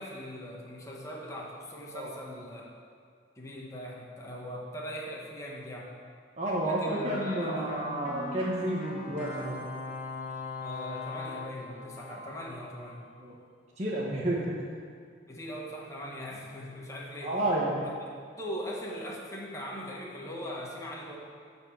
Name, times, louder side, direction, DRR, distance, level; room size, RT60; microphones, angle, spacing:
voice 1, 0.0-2.7 3.3-5.9 6.6-7.7 10.6-13.0 15.3-17.4 17.8-17.9 18.4-21.2, equal, 15° left, -3 dB, 1.4 m, -40 dB
voice 2, 6.4-9.5 13.2-13.4 13.8-14.6 17.2-17.8, right 1 dB, 35° right, -6 dB, 1.2 m, -30 dB
sound 1, 6.9-13.1, left 3 dB, 45° left, 1.1 m, -40 dB
12.5 x 4.6 x 7.5 m, 2.1 s
head